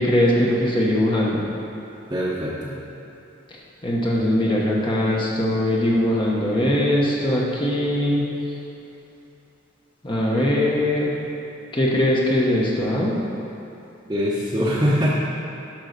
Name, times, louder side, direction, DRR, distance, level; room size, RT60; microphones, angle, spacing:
voice 1, 0.0-1.4 3.8-8.3 10.0-11.2 11.7-13.2, left 1 dB, 25° left, -4 dB, 1.0 m, -21 dB
voice 2, 2.1-2.8 14.1-15.1, equal, 20° right, -7 dB, 0.9 m, -23 dB
8.8 x 5.6 x 6.5 m, 2.8 s
head